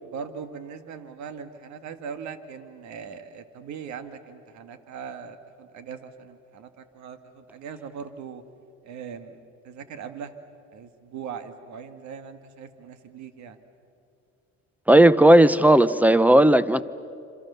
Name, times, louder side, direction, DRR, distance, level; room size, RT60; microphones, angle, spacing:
voice 1, 0.0-8.4 8.8-10.4 10.7-13.6, right 6 dB, 70° right, 9 dB, 1.8 m, -40 dB
voice 2, 14.9-16.8, right 1 dB, 5° right, 15 dB, 0.8 m, -15 dB
27.5 x 27.0 x 6.9 m, 2.6 s
cardioid pair, 100°, 30 cm